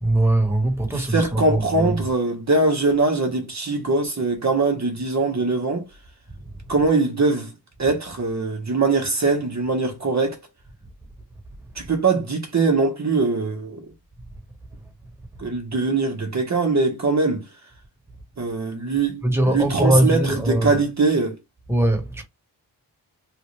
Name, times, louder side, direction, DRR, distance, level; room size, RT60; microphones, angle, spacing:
voice 1, 0.0-2.0 19.2-20.8 21.7-22.2, right 1 dB, 5° right, 1.5 m, -21 dB
voice 2, 0.9-5.9 6.7-7.5 7.8-10.4 11.7-13.8 15.4-17.5 18.4-21.4, right 3 dB, 40° right, 1.1 m, -22 dB
3.3 x 2.5 x 3.2 m
cardioid pair, 65°, 41 cm